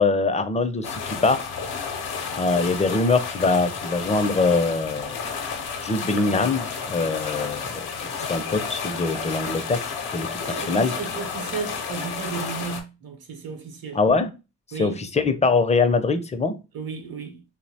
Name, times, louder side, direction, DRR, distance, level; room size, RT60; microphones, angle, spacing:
voice 1, 0.0-1.5 2.4-5.2 5.8-9.8 10.1-10.3 10.7-10.9 13.9-14.3 14.8-16.6, left 3 dB, 20° left, 0.4 m, -23 dB
sound 1, 0.8-12.8, left 5 dB, 80° left, 0.6 m, -31 dB
voice 2, 10.4-14.0 14.7-15.0 16.7-17.4, right 5 dB, 65° right, 0.9 m, -34 dB
2.8 x 2.1 x 2.6 m
supercardioid pair, 45°, 39 cm